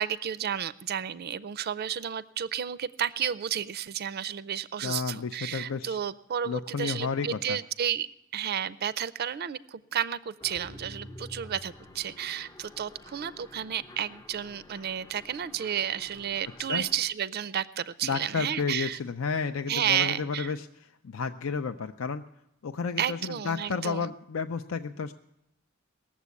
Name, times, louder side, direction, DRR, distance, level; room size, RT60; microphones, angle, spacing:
voice 1, 0.0-8.1 8.3-19.0 19.7-20.5 23.0-24.1, right 9 dB, 50° right, 16 dB, 0.4 m, -32 dB
voice 2, 4.8-6.0 6.5-7.6 16.6-16.8 18.0-20.7 21.0-22.2 22.6-25.1, left 5 dB, 70° left, 8 dB, 0.5 m, -32 dB
Mechanisms, 10.4-17.1, left 1 dB, 15° left, 0.5 m, -49 dB
19.0 x 7.3 x 8.3 m, 0.84 s
head